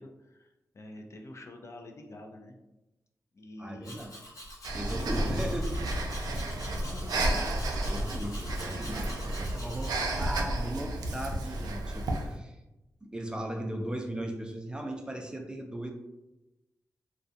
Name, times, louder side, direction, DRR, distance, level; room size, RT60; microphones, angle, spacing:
voice 1, 0.0-2.5 3.3-4.0 4.9-5.5 6.8-7.5, left 1 dB, 45° left, 3 dB, 0.4 m, -47 dB
voice 2, 3.6-4.2 4.7-5.7 7.9-12.6 13.0-15.9, right 1 dB, 15° right, 2 dB, 0.4 m, -37 dB
Domestic sounds home sounds, 3.8-10.0, equal, 65° left, 0.8 m, -46 dB
Breathing, 4.6-12.3, right 1 dB, 90° right, 0.3 m, -32 dB
2.3 x 2.2 x 2.6 m, 0.97 s
cardioid pair, 60°, 6 cm